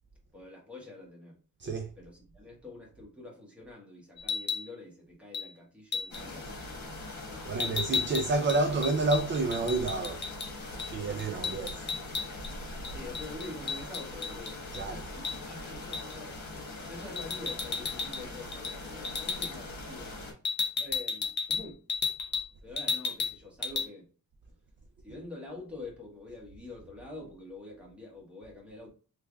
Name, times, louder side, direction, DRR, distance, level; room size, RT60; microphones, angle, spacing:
voice 1, 0.3-1.4 2.0-6.6 7.2-7.6 12.9-14.8 15.2-20.3 20.8-21.8 22.6-24.1 25.0-28.9, left 2 dB, 5° right, 1.4 m, -46 dB
voice 2, 1.6-1.9 7.5-10.3 10.9-11.9 14.7-15.1, right 3 dB, 35° right, 0.4 m, -29 dB
sound 1, 4.2-4.7 5.3-5.5 5.9-6.2 7.6-10.5 10.8-10.9 11.2-12.5 12.8-14.8 15.2-15.4 15.9-16.2 17.2-18.2 18.5-18.8 19.0-19.5 20.4-22.5 22.8-23.4 23.6-23.9, left 5 dB, 30° left, 0.4 m, -33 dB
sound 2, 6.1-20.3, left 2 dB, 55° left, 1.4 m, -42 dB
3.4 x 3.2 x 2.3 m
wide cardioid pair, 150°, 35 cm